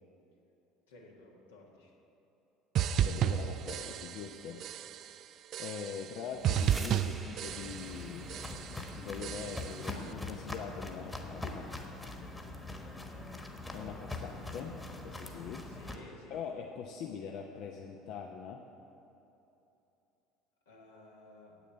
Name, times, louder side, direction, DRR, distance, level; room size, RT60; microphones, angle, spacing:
voice 1, 0.9-1.9 15.6-16.4 20.6-21.6, left 2 dB, 75° left, -1 dB, 1.6 m, -55 dB
sound 1, 2.7-4.3 4.6-5.1 5.5-6.2 6.4-8.0 8.3-8.8 9.2-9.8, right 10 dB, 50° right, 0.4 m, -33 dB
voice 2, 3.0-4.6 5.6-11.7 13.7-15.7 16.3-18.6, left 7 dB, 55° left, 3 dB, 0.6 m, -43 dB
sound 2, 6.2-16.0, right 2 dB, 10° right, 0.9 m, -54 dB
Walk footsteps, 7.5-15.9, left 2 dB, 15° left, 1.3 m, -43 dB
8.5 x 7.1 x 8.0 m, 3.0 s
figure-of-eight pair, 65°, 0 cm